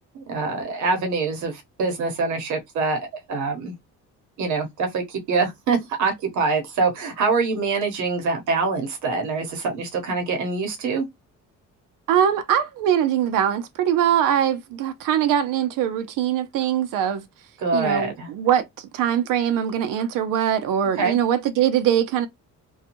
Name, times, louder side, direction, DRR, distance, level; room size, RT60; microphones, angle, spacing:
voice 1, 0.1-3.0 3.3-3.7 4.4-11.1 17.6-18.3 21.0-21.2, right 4 dB, 65° right, 0.9 m, -24 dB
voice 2, 12.1-17.2 17.7-22.3, right 9 dB, 80° right, 0.5 m, -22 dB
2.6 x 2.3 x 2.8 m
cardioid pair, 175°, 32 cm